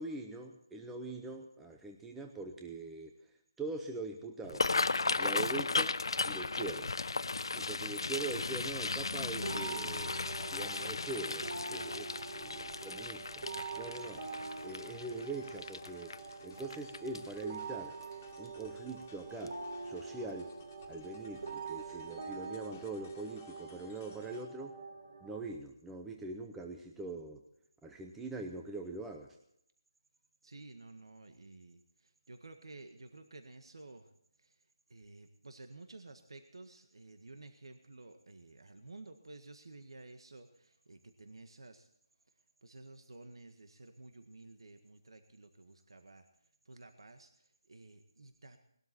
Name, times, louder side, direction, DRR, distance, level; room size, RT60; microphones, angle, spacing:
voice 1, 0.0-3.1 3.6-4.7 5.2-5.9 6.2-6.9 7.5-10.1 10.5-13.4 13.7-14.2 14.6-16.1 16.4-17.9 18.4-19.6 19.8-20.5 20.9-24.7 25.2-27.4 27.8-29.4, right 3 dB, 5° right, 3 dB, 0.7 m, -42 dB
sound 1, 4.4-17.6 18.0-18.3 18.6-19.1 19.5-19.6 20.8-21.0 21.4-21.5 22.0-22.1, left 3 dB, 75° left, 0.8 m, -36 dB
sound 2, 9.4-25.4, right 4 dB, 45° right, 3.6 m, -45 dB
sound 3, 10.7-24.4, left 5 dB, 20° left, 2.1 m, -61 dB
voice 2, 30.4-34.1 34.4-41.9 42.6-46.3 46.7-48.6, right 2 dB, 80° right, 7 dB, 1.7 m, -53 dB
20.0 x 12.5 x 4.3 m, 0.74 s
hypercardioid pair, 170°, 3 cm